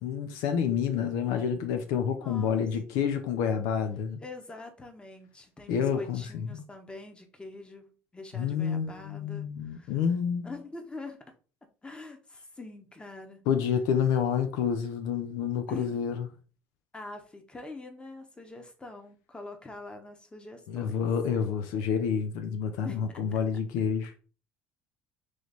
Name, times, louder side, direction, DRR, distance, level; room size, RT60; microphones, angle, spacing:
voice 1, 0.0-4.2 5.7-6.6 8.3-10.5 13.5-16.3 20.7-24.1, left 7 dB, 80° left, 0.6 m, -29 dB
voice 2, 2.2-2.7 4.2-9.9 10.4-11.2 11.8-13.5 15.7-15.9 16.9-21.0 22.8-23.1, left 2 dB, 15° left, 1.1 m, -44 dB
3.2 x 3.2 x 4.0 m
supercardioid pair, 85°, 6 cm